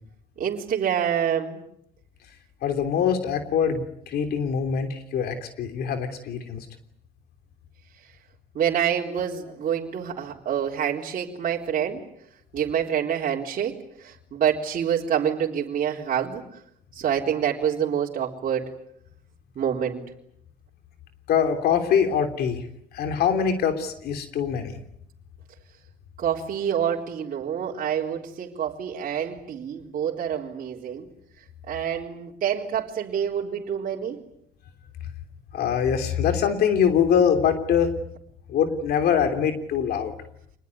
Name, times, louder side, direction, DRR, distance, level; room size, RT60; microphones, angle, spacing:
voice 1, 0.4-1.6 8.5-12.0 12.5-16.4 16.9-18.7 19.6-20.0 26.2-31.1 31.7-34.2, right 9 dB, 50° right, -3 dB, 4.0 m, -27 dB
voice 2, 2.6-6.6 21.3-22.6 22.9-24.8 35.5-37.9 38.5-40.1, left 7 dB, 70° left, 7 dB, 3.2 m, -23 dB
26.5 x 20.5 x 9.7 m, 0.72 s
cardioid pair, 110°, 17 cm